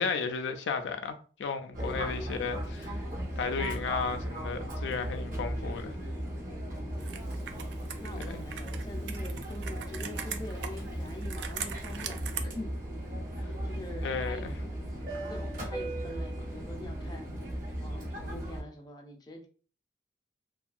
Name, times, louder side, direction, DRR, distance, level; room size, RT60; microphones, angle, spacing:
voice 1, 0.0-3.0 3.4-6.0 8.3-8.4 14.0-14.5, left 5 dB, 90° left, 0.4 m, -34 dB
voice 2, 1.7-2.6 6.6-7.3 8.0-12.7 13.6-14.6 15.3-17.3 17.7-19.5, left 1 dB, 25° left, 0.4 m, -45 dB
Fixed-wing aircraft airplane, 1.7-18.6, right 1 dB, 50° right, 0.9 m, -36 dB
Computer keyboard, 7.0-12.4, right 8 dB, 70° right, 0.3 m, -41 dB
2.6 x 2.3 x 2.4 m
head